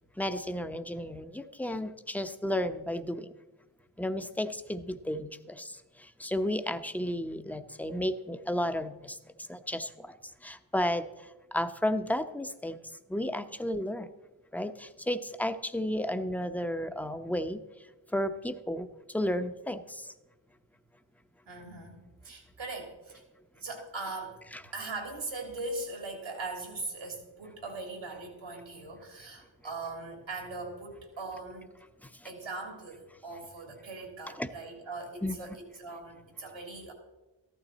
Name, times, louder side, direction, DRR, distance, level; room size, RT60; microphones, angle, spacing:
voice 1, 0.2-3.3 4.0-9.2 9.5-10.1 10.4-12.8 13.1-14.1 14.5-17.6 18.1-20.1 32.0-32.3 34.4-34.5 35.2-35.3, left 1 dB, 5° left, 9 dB, 0.8 m, -33 dB
voice 2, 21.4-23.2 23.5-24.4 24.7-31.8 32.2-36.9, right 3 dB, 90° right, 1 dB, 3.2 m, -40 dB
14.0 x 12.0 x 4.1 m, 1.1 s
cardioid pair, 50°, 45 cm